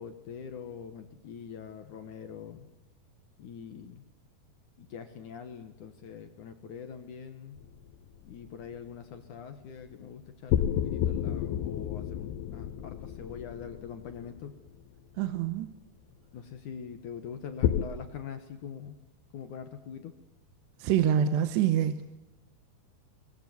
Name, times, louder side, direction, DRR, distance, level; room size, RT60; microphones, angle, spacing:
voice 1, 0.0-2.7 3.4-4.0 4.8-7.6 8.2-14.6 16.3-18.9 19.3-20.1, left 7 dB, 60° left, 8 dB, 2.3 m, -43 dB
sound 1, 7.6-8.5 10.5-14.9 17.6-17.9, left 10 dB, 80° left, 3.1 m, -31 dB
voice 2, 15.2-15.7 20.8-22.0, right 9 dB, 80° right, 10 dB, 3.2 m, -26 dB
23.5 x 20.5 x 9.5 m, 0.94 s
omnidirectional pair, 4.9 m